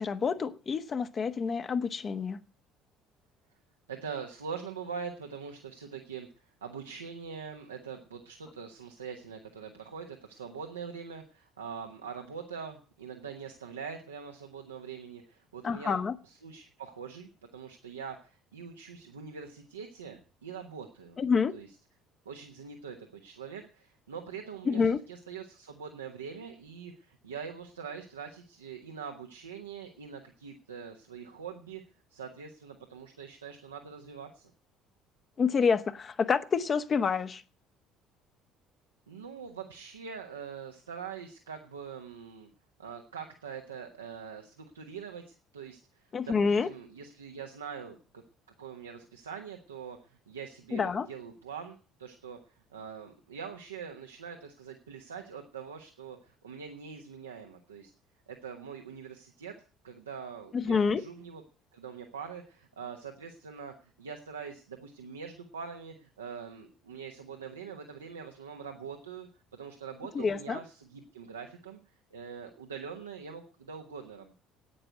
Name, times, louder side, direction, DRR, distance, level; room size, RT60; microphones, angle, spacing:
voice 1, 0.0-2.4 15.6-16.1 21.2-21.5 24.7-25.0 35.4-37.4 46.1-46.7 50.7-51.1 60.5-61.0 70.1-70.6, left 5 dB, 35° left, 1.1 m, -28 dB
voice 2, 3.9-6.3 6.6-16.0 16.2-21.2 21.5-21.7 22.2-31.8 32.1-34.5 39.1-42.5 42.8-48.2 48.6-52.4 52.7-57.9 58.3-59.6 59.8-61.4 61.7-71.8 72.1-74.3, right 6 dB, 80° right, 1.2 m, -43 dB
11.0 x 9.0 x 9.3 m
figure-of-eight pair, 55°, 0 cm